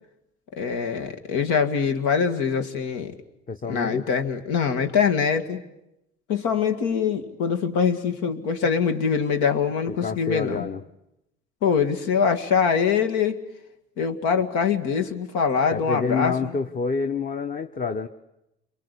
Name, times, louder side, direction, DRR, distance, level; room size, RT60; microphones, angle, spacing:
voice 1, 0.6-3.1 3.7-5.6 6.3-10.7 11.6-13.4 14.0-16.5, left 6 dB, 90° left, 7 dB, 2.2 m, -23 dB
voice 2, 3.5-4.1 9.9-10.8 15.7-18.1, left 5 dB, 30° left, 7 dB, 1.0 m, -28 dB
30.0 x 23.5 x 8.4 m, 0.88 s
cardioid pair, 110°, 29 cm